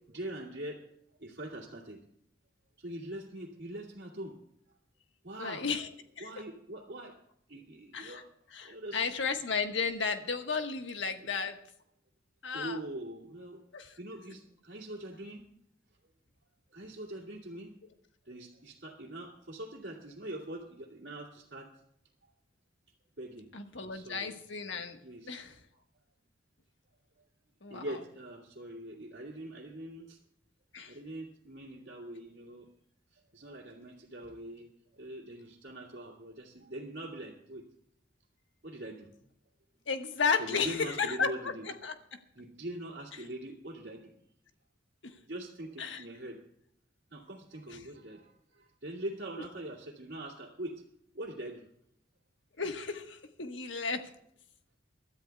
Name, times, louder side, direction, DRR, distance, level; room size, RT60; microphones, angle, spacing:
voice 1, 0.1-0.8 1.2-2.0 2.8-4.3 5.2-5.7 6.2-7.1 7.5-8.3 8.6-9.1 12.5-13.6 14.0-15.4 16.7-17.7 18.3-21.7 23.2-23.5 23.8-24.3 25.0-25.3 27.7-30.2 30.9-32.7 33.3-34.7 34.9-37.6 38.6-39.1 40.4-41.7 42.3-44.1 45.2-46.4 47.1-50.7 51.1-51.6, right 1 dB, 70° right, -5 dB, 2.4 m, -43 dB
voice 2, 5.4-5.9 6.2-6.3 7.9-8.2 8.5-11.6 12.4-12.8 13.7-14.0 23.5-25.0 25.3-25.6 27.6-27.8 30.7-31.0 39.9-41.5 41.8-42.2 45.0-45.1 45.8-46.0 47.7-47.9 52.6-54.1, left 5 dB, 90° left, 6 dB, 1.4 m, -33 dB
29.0 x 13.0 x 2.3 m, 0.73 s
head